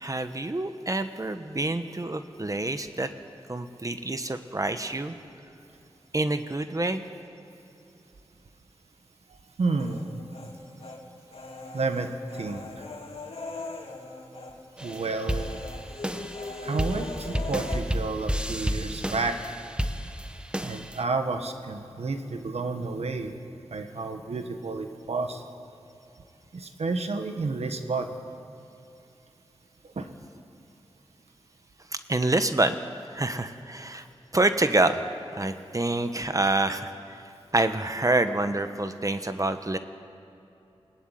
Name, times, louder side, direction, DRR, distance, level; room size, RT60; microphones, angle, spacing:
voice 1, 0.0-3.1 3.5-5.1 6.1-7.0 31.9-32.8 33.1-34.1 34.3-35.0 35.4-37.2 37.5-39.8, right 2 dB, 35° right, 9 dB, 1.1 m, -27 dB
voice 2, 9.6-10.2 11.7-12.8 14.8-15.7 16.6-19.4 20.6-23.4 23.7-25.4 26.5-28.1 29.9-30.1, right 3 dB, 85° right, 7 dB, 1.5 m, -30 dB
Human voice, 9.8-11.0 11.3-14.6 14.8-15.0 15.3-17.8, left 3 dB, 70° left, 2.8 m, -40 dB
sound 1, 14.8-21.0, equal, 10° right, 1.2 m, -32 dB
20.5 x 19.0 x 9.2 m, 2.8 s
wide cardioid pair, 55°, 10 cm